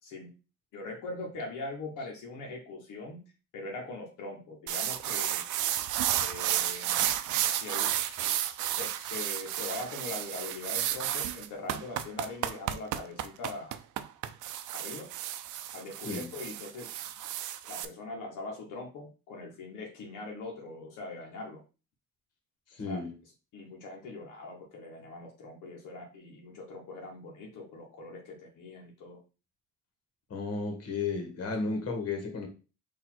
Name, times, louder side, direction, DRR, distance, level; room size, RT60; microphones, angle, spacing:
voice 1, 0.7-3.2 3.5-5.4 6.2-6.9 7.5-13.7 14.7-15.1 15.7-16.9 17.7-21.6 22.8-23.0 23.5-29.2 31.5-31.6, left 2 dB, 85° left, -1 dB, 1.1 m, -42 dB
sound 1, 4.7-17.8, right 11 dB, 80° right, 0.5 m, -32 dB
voice 2, 22.7-23.1 30.3-32.5, left 4 dB, 55° left, 3 dB, 1.6 m, -33 dB
4.0 x 2.8 x 4.4 m, 0.33 s
cardioid pair, 90°, 30 cm